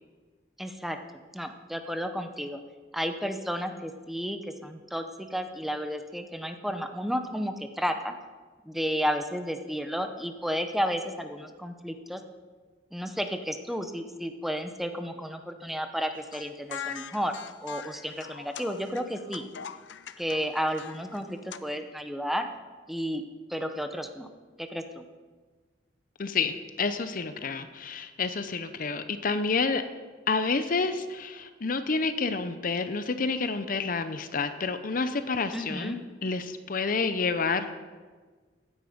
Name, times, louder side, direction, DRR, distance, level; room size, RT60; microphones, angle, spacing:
voice 1, 0.6-2.6 2.9-8.1 8.6-12.2 12.9-17.4 17.6-19.5 20.2-22.5 22.9-23.2 23.5-24.3 24.6-25.0 35.5-36.0, equal, ahead, 7 dB, 0.8 m, -32 dB
sound 1, 16.2-21.6, left 8 dB, 90° left, 0.6 m, -42 dB
voice 2, 26.2-29.8 30.3-37.7, left 4 dB, 50° left, 10 dB, 0.7 m, -29 dB
15.0 x 10.0 x 5.1 m, 1.4 s
head